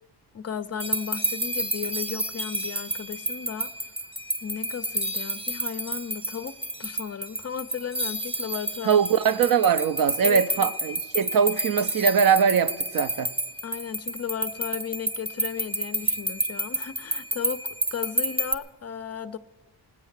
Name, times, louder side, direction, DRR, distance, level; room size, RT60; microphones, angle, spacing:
voice 1, 0.3-3.9 4.4-9.0 10.2-10.7 13.6-19.4, left 8 dB, 40° left, 0.4 m, -35 dB
sound 1, 0.8-18.5, right 1 dB, 15° right, 0.7 m, -30 dB
voice 2, 8.8-13.3, right 7 dB, 55° right, 0.5 m, -22 dB
18.5 x 8.5 x 7.3 m
wide cardioid pair, 145°, 42 cm